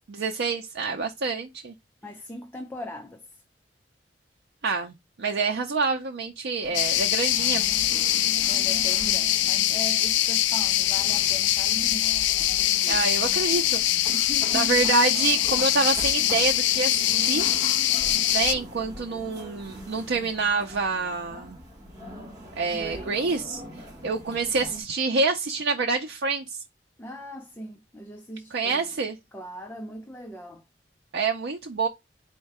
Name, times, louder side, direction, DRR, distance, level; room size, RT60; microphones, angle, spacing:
voice 1, 0.1-1.7 4.6-7.7 12.9-14.1 14.5-17.5 18.3-21.6 22.6-23.6 24.0-26.6 28.5-29.2 31.1-31.9, right 4 dB, 85° right, 0.5 m, -27 dB
voice 2, 2.0-3.4 8.5-13.4 14.1-14.9 22.7-23.2 27.0-29.0 29.3-30.6, equal, 10° left, 0.4 m, -40 dB
sound 1, 6.6-24.8, equal, 20° right, 1.3 m, -42 dB
sound 2, 6.7-18.5, left 13 dB, 90° left, 0.3 m, -23 dB
4.4 x 2.1 x 4.6 m
head